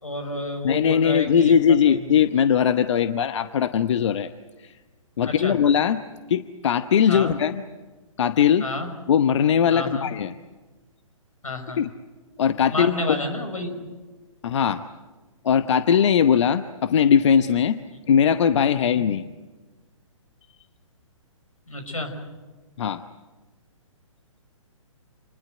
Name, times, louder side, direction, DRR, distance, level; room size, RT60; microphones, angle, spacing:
voice 1, 0.0-1.6 1.9-2.0 5.3-5.5 7.1-7.3 8.6-8.9 9.7-10.1 11.4-11.8 12.7-13.8 18.8-19.0 21.7-22.1, left 1 dB, 90° left, 8 dB, 5.9 m, -30 dB
voice 2, 0.6-4.3 4.6-4.8 5.2-6.0 6.3-7.6 8.2-8.6 9.1-10.3 11.8-11.9 12.4-13.2 14.4-14.8 15.4-17.8 18.1-19.3 22.8-23.0, left 8 dB, 60° left, 11 dB, 1.0 m, -20 dB
28.0 x 20.5 x 7.9 m, 1.3 s
hypercardioid pair, 135°, 17 cm